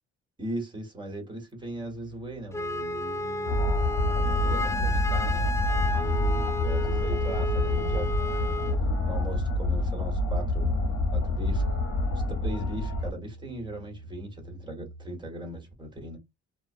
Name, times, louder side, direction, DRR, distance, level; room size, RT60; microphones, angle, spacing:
voice 1, 0.4-3.6 4.4-8.5 9.1-10.8 11.1-11.6 12.1-16.2, right 1 dB, 15° right, 1.5 m, -39 dB
sound 1, 1.5-15.2, right 4 dB, 60° right, 1.3 m, -48 dB
Wind instrument woodwind instrument, 2.5-8.8, left 1 dB, 10° left, 0.4 m, -32 dB
sound 2, 3.5-13.1, left 1 dB, 65° left, 1.0 m, -27 dB
2.4 x 2.3 x 2.5 m
cardioid pair, 90°, 30 cm